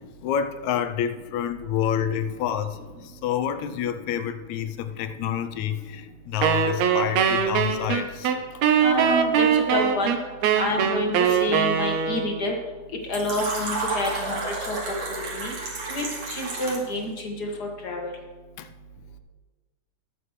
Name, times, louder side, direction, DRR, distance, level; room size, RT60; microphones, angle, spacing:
voice 1, 0.2-8.3 18.6-18.7, left 9 dB, 75° left, 9 dB, 1.9 m, -28 dB
Wind instrument woodwind instrument, 6.4-12.4, right 7 dB, 70° right, 2.0 m, -22 dB
voice 2, 8.8-10.2 10.5-12.5 13.1-14.4 14.7-14.8 15.3-15.5 15.9-18.1, left 1 dB, 45° left, 1 dB, 1.5 m, -28 dB
Fill (with liquid), 13.1-17.0, right 3 dB, 55° right, 3.4 m, -31 dB
20.0 x 7.2 x 3.2 m, 1.4 s
omnidirectional pair, 3.5 m